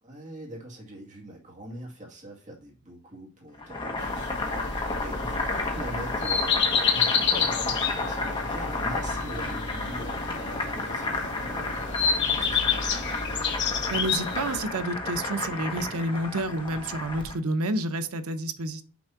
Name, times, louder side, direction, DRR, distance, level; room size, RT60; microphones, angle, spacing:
voice 1, 0.0-13.1, right 1 dB, 35° right, 2.3 m, -43 dB
Boiling, 3.5-17.4, left 2 dB, 25° left, 1.2 m, -32 dB
sound 1, 4.0-14.6, left 6 dB, 55° left, 1.0 m, -29 dB
voice 2, 13.9-18.8, right 1 dB, 85° right, 0.8 m, -29 dB
6.2 x 3.4 x 5.8 m
head